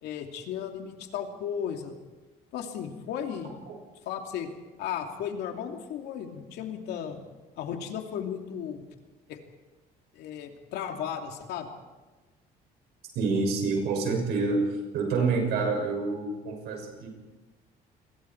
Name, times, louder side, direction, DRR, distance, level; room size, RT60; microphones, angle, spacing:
voice 1, 0.0-2.0 2.5-3.6 4.1-4.5 4.8-7.2 7.6-8.8 9.3-9.4 10.1-11.7, left 8 dB, 80° left, 4 dB, 2.7 m, -35 dB
voice 2, 13.1-14.6 14.9-17.1, right 4 dB, 80° right, 2 dB, 6.6 m, -27 dB
28.5 x 21.5 x 4.6 m, 1.2 s
cardioid pair, 110°, 17 cm